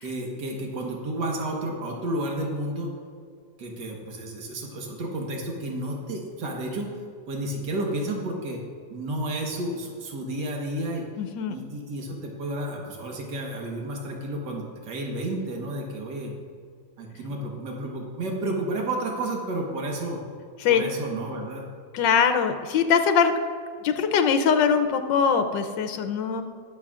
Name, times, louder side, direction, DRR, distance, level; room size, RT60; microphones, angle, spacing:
voice 1, 0.0-2.9 3.6-6.9 7.3-8.6 8.9-11.0 11.5-16.3 17.0-20.2 20.7-21.6, right 1 dB, 70° right, 0 dB, 1.9 m, -31 dB
voice 2, 11.2-11.5 20.6-20.8 21.9-23.3 23.8-26.4, left 6 dB, 85° left, 8 dB, 1.4 m, -22 dB
20.0 x 7.1 x 2.4 m, 2.2 s
omnidirectional pair, 2.0 m